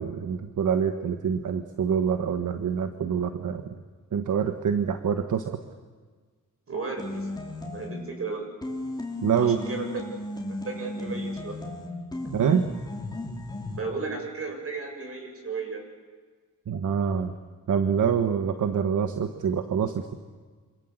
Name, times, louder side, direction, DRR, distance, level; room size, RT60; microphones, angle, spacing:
voice 1, 0.0-3.7 4.1-5.6 9.2-9.6 12.3-12.6 16.7-17.3 17.7-20.1, right 7 dB, 65° right, 7 dB, 1.5 m, -26 dB
voice 2, 6.7-7.3 7.7-8.5 9.4-9.9 10.5-11.6 13.8-15.8, right 4 dB, 45° right, 3 dB, 7.5 m, -34 dB
sound 1, 7.0-8.1 8.6-13.8, left 1 dB, 10° left, 4.0 m, -35 dB
27.0 x 26.5 x 8.1 m, 1.5 s
wide cardioid pair, 135°, 33 cm